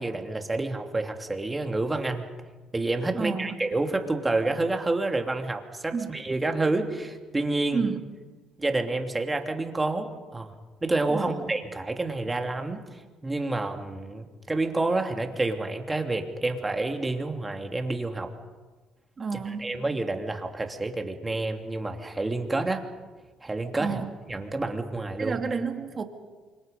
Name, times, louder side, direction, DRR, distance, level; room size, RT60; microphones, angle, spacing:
voice 1, 0.0-2.3 2.7-7.8 8.6-10.5 10.8-18.3 19.3-22.9 23.4-24.0 24.3-25.4, right 2 dB, 20° right, 4 dB, 2.9 m, -29 dB
voice 2, 3.1-3.6 5.9-6.1 7.7-8.0 11.1-11.4 19.2-19.8 23.7-24.1 25.2-26.0, right 5 dB, 35° right, 5 dB, 2.7 m, -30 dB
29.0 x 25.5 x 5.4 m, 1.3 s
supercardioid pair, 85°, 0 cm